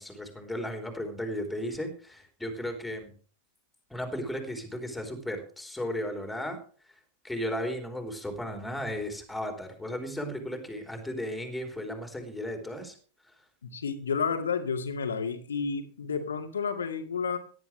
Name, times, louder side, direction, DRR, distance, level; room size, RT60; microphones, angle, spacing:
voice 1, 0.0-3.1 3.9-6.6 7.2-13.0, equal, 5° left, 4 dB, 3.8 m, -35 dB
voice 2, 13.6-17.4, left 5 dB, 70° left, 7 dB, 2.1 m, -31 dB
17.5 x 11.5 x 3.4 m, 0.41 s
figure-of-eight pair, 90°, 0 cm